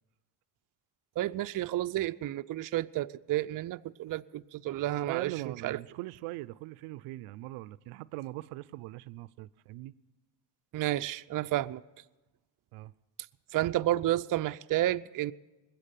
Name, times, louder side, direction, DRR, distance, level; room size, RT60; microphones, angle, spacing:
voice 1, 1.2-5.3 5.6-5.8 10.7-11.8 13.5-15.3, right 14 dB, 40° right, 0.5 m, -31 dB
voice 2, 5.0-9.9 12.7-12.9, right 18 dB, 85° right, 0.6 m, -40 dB
20.5 x 7.8 x 9.1 m
supercardioid pair, 75°, 50 cm